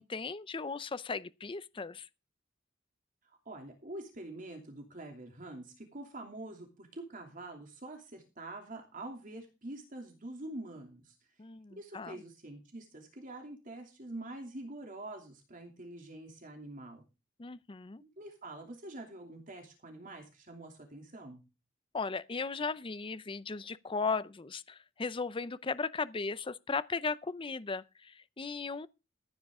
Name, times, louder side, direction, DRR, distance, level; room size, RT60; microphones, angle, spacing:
voice 1, 0.0-2.1 11.4-12.2 17.4-18.0 21.9-28.9, left 4 dB, 25° left, 0.5 m, -37 dB
voice 2, 3.3-11.3 11.8-17.0 18.0-21.4, right 2 dB, 45° right, 2.8 m, -46 dB
14.5 x 9.6 x 3.6 m
head